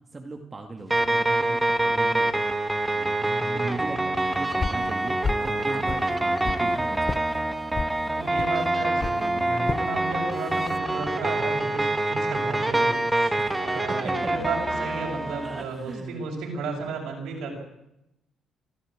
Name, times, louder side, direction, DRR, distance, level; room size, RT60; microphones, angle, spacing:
voice 1, 0.1-2.3 2.9-7.5 13.4-13.6 13.9-14.1 15.4-16.2, right 3 dB, 30° right, 4 dB, 2.2 m, -39 dB
sound 1, 0.9-15.6, right 2 dB, 10° right, 2.2 m, -26 dB
voice 2, 3.1-3.7 8.1-13.3 13.6-17.5, right 4 dB, 85° right, 0 dB, 6.0 m, -34 dB
sound 2, 4.6-4.9 5.2-5.5 5.9-6.7 7.1-7.2 7.7-8.0 8.4-8.5 9.0-9.2 9.7-9.9 10.4-10.8, left 4 dB, 35° left, 0.7 m, -30 dB
27.0 x 12.5 x 8.8 m, 0.87 s
cardioid pair, 90°, 0 cm